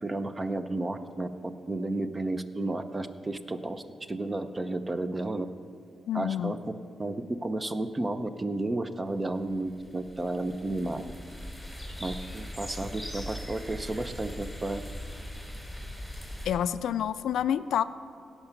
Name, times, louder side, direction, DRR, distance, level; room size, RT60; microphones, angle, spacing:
voice 1, 0.0-5.5 6.1-6.6 7.0-11.1 12.0-14.8, right 2 dB, 25° right, 11 dB, 0.6 m, -32 dB
voice 2, 6.1-6.6 16.5-17.8, left 9 dB, 90° left, 14 dB, 0.3 m, -28 dB
sound 1, 9.5-16.5, equal, ahead, 3.0 m, -40 dB
17.0 x 5.7 x 5.8 m, 2.6 s
cardioid pair, 90°, 0 cm